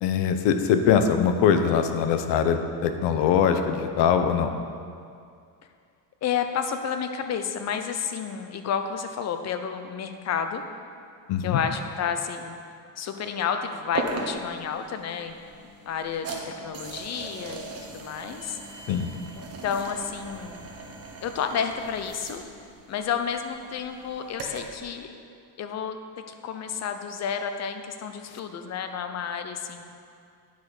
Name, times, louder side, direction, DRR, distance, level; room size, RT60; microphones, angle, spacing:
voice 1, 0.0-4.5 11.3-11.6 18.9-19.1, left 7 dB, 65° left, 8 dB, 0.8 m, -22 dB
voice 2, 6.2-10.6 11.4-12.6 13.0-15.4 15.9-18.6 19.3-20.6 21.2-22.4 22.9-25.1 25.6-29.8, left 7 dB, 35° left, 7 dB, 0.7 m, -31 dB
sound 1, 13.9-24.8, right 3 dB, 30° right, 1.2 m, -39 dB
9.6 x 6.1 x 4.9 m, 2.4 s
cardioid pair, 130°, 46 cm